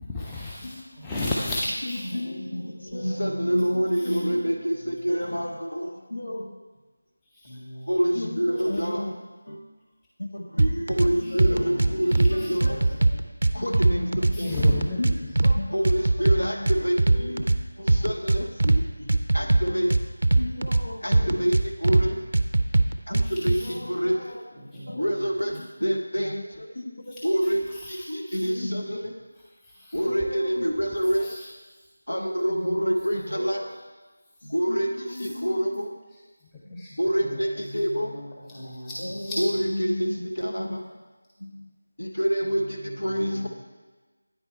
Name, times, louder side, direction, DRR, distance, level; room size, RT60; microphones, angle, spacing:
voice 1, 0.1-2.1 3.9-4.2 7.2-7.5 11.2-11.5 12.0-12.6 14.3-15.3 23.2-23.7 27.1-28.5 29.4-30.1 31.0-31.5 36.4-37.0 37.6-37.7 38.5-38.6 38.8-39.7, left 2 dB, 5° left, -7 dB, 0.4 m, -35 dB
voice 2, 0.6-1.0 2.1-6.5 7.9-9.2 9.5-9.6 10.2-14.7 15.0-15.1 15.4-17.5 17.8-22.2 23.1-24.5 24.9-26.9 27.2-29.1 29.9-31.3 32.1-33.8 34.4-35.9 36.6-38.1 39.0-41.0 41.4-41.7 42.0-43.5, equal, 75° left, 2 dB, 0.9 m, -27 dB
voice 3, 3.1-3.7 7.4-7.9 11.6-11.9 24.6-25.3 33.5-33.7 37.2-38.2 38.5-39.0 42.4-43.5, equal, 30° left, -6 dB, 2.0 m, -42 dB
sound 1, 10.6-11.1 11.4-12.3 12.6-14.3 14.6-15.6 15.9-17.6 17.9-18.8 19.1-20.8 21.1-22.0 22.3-23.6, right 2 dB, 55° right, 0.4 m, -20 dB
9.2 x 4.5 x 4.4 m, 1.3 s
figure-of-eight pair, 170°, 0 cm